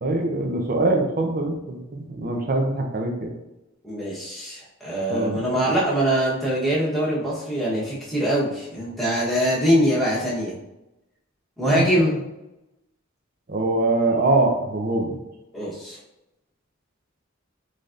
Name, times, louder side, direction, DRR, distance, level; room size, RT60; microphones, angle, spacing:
voice 1, 0.0-3.3 5.1-5.6 11.6-11.8 13.5-15.2, right 2 dB, 45° right, 2 dB, 0.6 m, -23 dB
voice 2, 3.8-10.5 11.6-12.2 15.5-16.0, equal, ahead, -8 dB, 1.1 m, -23 dB
4.0 x 3.3 x 2.5 m, 0.93 s
head